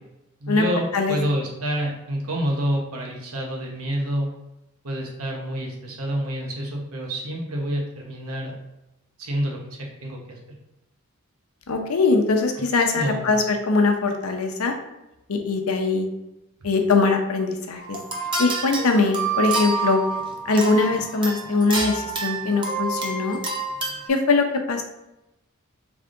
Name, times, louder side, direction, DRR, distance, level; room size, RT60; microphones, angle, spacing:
voice 1, 0.4-4.3 4.8-8.5 9.2-10.4 12.9-13.3, equal, 80° right, 0 dB, 1.0 m, -28 dB
voice 2, 11.7-14.7 15.3-16.1 16.6-18.0 18.4-20.0 20.5-23.4 24.1-24.8, left 3 dB, 80° left, 4 dB, 0.7 m, -21 dB
sound 1, 17.8-24.1, right 3 dB, 20° right, 0.7 m, -28 dB
3.8 x 3.5 x 3.6 m, 0.91 s
head